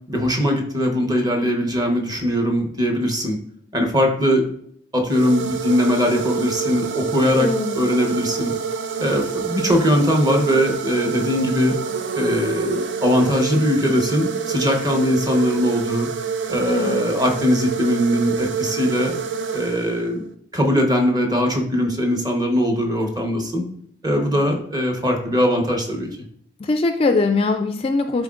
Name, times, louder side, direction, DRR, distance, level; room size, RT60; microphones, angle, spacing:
voice 1, 0.1-3.4 3.7-4.5 4.9-7.5 7.7-8.5 9.0-11.8 12.1-16.1 16.5-19.2 19.5-20.2 20.5-23.6 24.0-26.1, equal, 20° right, 3 dB, 1.0 m, -20 dB
sound 1, 5.1-20.3, right 6 dB, 80° right, 0.5 m, -27 dB
voice 2, 7.4-7.8 16.7-17.0 24.2-24.4 26.6-28.2, left 3 dB, 30° left, 7 dB, 0.3 m, -21 dB
11.5 x 3.8 x 2.5 m, 0.67 s
head